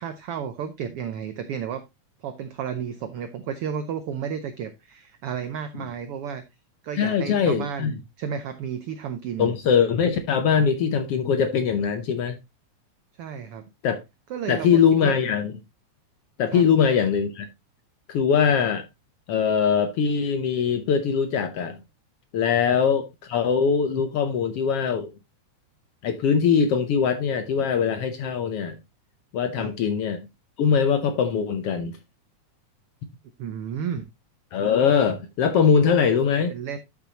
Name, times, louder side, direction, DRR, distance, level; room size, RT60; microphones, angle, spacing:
voice 1, 0.0-1.9 2.2-6.4 6.8-9.6 13.2-13.7 14.3-15.1 16.5-16.6 29.6-29.7 33.4-34.1 36.5-36.8, right 7 dB, 75° right, 1.3 m, -32 dB
voice 2, 7.0-7.9 9.4-12.4 13.8-14.0 14.5-15.5 16.4-17.5 18.1-18.8 19.3-21.8 22.3-25.1 26.0-28.8 29.3-30.2 30.6-32.0 34.5-36.5, left 6 dB, 65° left, 1.5 m, -22 dB
12.5 x 6.1 x 2.9 m
omnidirectional pair, 3.5 m